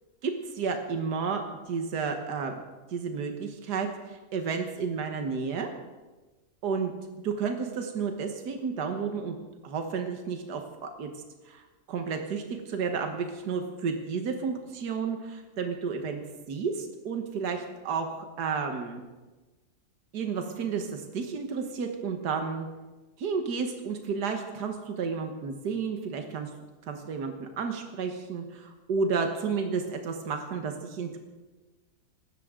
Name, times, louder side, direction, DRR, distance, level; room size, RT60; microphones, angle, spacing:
voice 1, 0.2-1.4 1.7-2.6 2.9-5.7 6.6-6.9 7.2-9.4 9.6-11.1 11.5-11.6 11.9-19.0 20.1-22.7 23.2-26.5 26.9-31.2, right 5 dB, 75° right, 5 dB, 1.8 m, -32 dB
25.0 x 13.5 x 3.7 m, 1.2 s
omnidirectional pair, 1.7 m